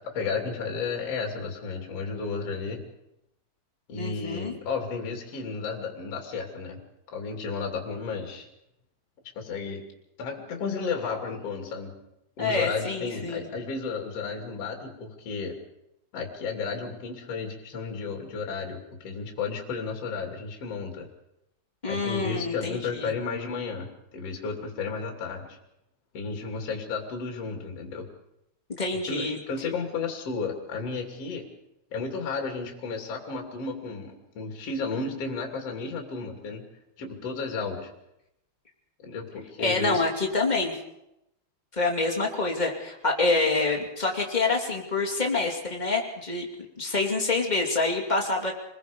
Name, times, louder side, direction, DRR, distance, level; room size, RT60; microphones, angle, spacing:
voice 1, 0.1-2.8 3.9-6.8 7.1-8.5 9.3-9.8 10.2-12.0 12.4-15.5 16.1-21.1 21.9-25.6 26.1-28.1 29.1-31.4 31.9-36.6 37.0-37.9 39.0-40.0, left 4 dB, 40° left, 2 dB, 3.2 m, -33 dB
voice 2, 4.0-4.5 12.4-13.4 21.8-23.1 28.7-29.4 39.6-40.7 41.7-46.5 46.8-48.5, left 3 dB, 15° left, -1 dB, 1.4 m, -27 dB
27.0 x 21.0 x 5.3 m, 0.85 s
omnidirectional pair, 5.3 m